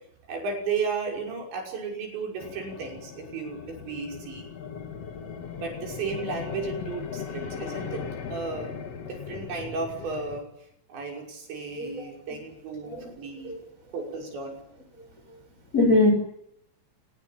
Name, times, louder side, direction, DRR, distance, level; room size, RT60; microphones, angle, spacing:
voice 1, 0.3-4.5 5.6-8.7 9.1-10.5 10.9-13.5 13.9-14.6, right 4 dB, 60° right, 1 dB, 8.1 m, -34 dB
sound 1, 2.4-10.4, left 6 dB, 65° left, 1.5 m, -38 dB
voice 2, 11.8-12.1 12.8-13.1 13.4-13.6 15.7-16.1, left 2 dB, 15° left, 6 dB, 4.2 m, -22 dB
27.0 x 20.5 x 9.2 m, 0.74 s
omnidirectional pair, 5.9 m